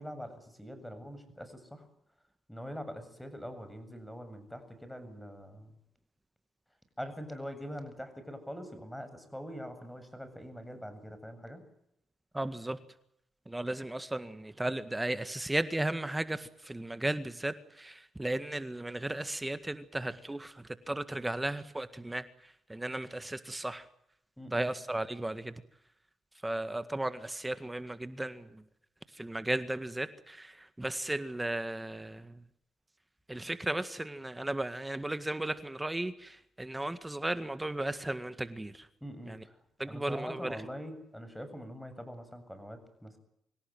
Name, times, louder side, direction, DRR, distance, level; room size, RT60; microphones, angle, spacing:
voice 1, 0.0-1.9 2.5-5.8 7.0-11.6 24.4-24.7 39.0-43.2, equal, 5° left, 10 dB, 7.6 m, -43 dB
voice 2, 12.3-12.8 13.5-22.2 22.7-23.8 24.5-25.5 26.4-28.6 29.2-32.3 33.3-38.9 39.8-40.5, right 1 dB, 15° right, 12 dB, 1.8 m, -35 dB
25.5 x 17.0 x 9.3 m, 0.77 s
supercardioid pair, 50°, 0 cm